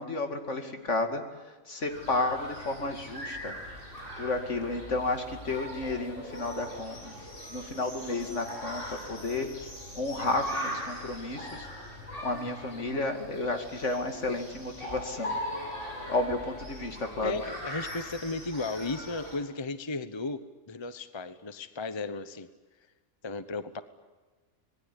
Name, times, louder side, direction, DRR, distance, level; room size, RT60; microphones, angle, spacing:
voice 1, 0.0-3.6 4.2-7.2 7.5-9.7 9.9-11.7 12.2-15.3 16.1-17.3, left 2 dB, 65° left, 5 dB, 2.8 m, -32 dB
sound 1, 1.9-19.4, equal, 45° left, 8.2 m, -40 dB
voice 2, 17.2-20.4 20.7-22.5 23.2-23.8, left 3 dB, 25° left, 12 dB, 0.9 m, -35 dB
26.5 x 20.5 x 9.9 m, 1.3 s
omnidirectional pair, 1.4 m